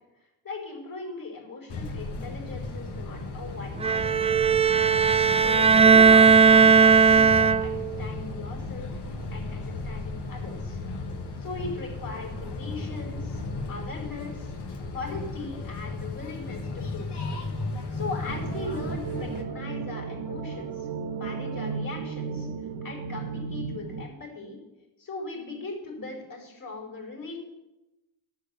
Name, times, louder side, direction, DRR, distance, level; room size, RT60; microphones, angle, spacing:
voice 1, 0.4-4.5 5.3-10.8 11.4-13.4 13.7-14.5 14.9-17.1 17.9-22.5 22.8-24.6 25.0-27.4, left 3 dB, 50° left, -8 dB, 4.8 m, -39 dB
sound 1, 1.7-19.4, left 3 dB, 65° left, 1.5 m, -35 dB
Bowed string instrument, 3.8-8.0, right 6 dB, 15° right, 0.3 m, -17 dB
sound 2, 18.3-24.0, right 5 dB, 60° right, 1.3 m, -34 dB
12.0 x 6.4 x 6.9 m, 1.0 s
cardioid pair, 75°, 43 cm